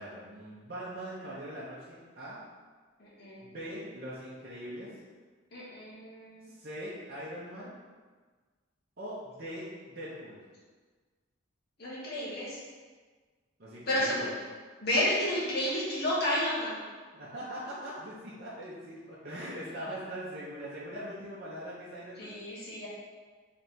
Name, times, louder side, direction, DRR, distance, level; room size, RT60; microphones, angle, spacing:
voice 1, 0.0-2.4 3.4-5.0 6.5-7.7 9.0-10.4 13.6-14.3 17.1-22.3, equal, 45° right, -9 dB, 0.8 m, -41 dB
voice 2, 3.0-3.4 5.5-6.5 11.8-12.6 13.9-14.3 14.8-16.8 22.2-22.9, left 1 dB, 50° left, -7 dB, 1.3 m, -31 dB
3.4 x 3.3 x 4.2 m, 1.4 s
head